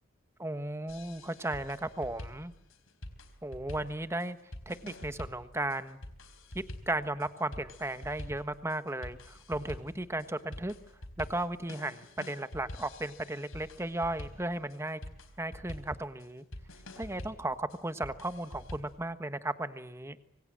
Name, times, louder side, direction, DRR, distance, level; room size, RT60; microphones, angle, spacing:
voice 1, 0.4-2.5 3.4-4.4 4.7-6.0 6.5-10.7 11.2-15.0 15.4-16.4 17.0-20.2, right 1 dB, 15° right, 11 dB, 1.3 m, -35 dB
sound 1, 0.9-19.0, left 1 dB, 85° left, 4.1 m, -47 dB
26.5 x 25.0 x 7.7 m, 0.73 s
head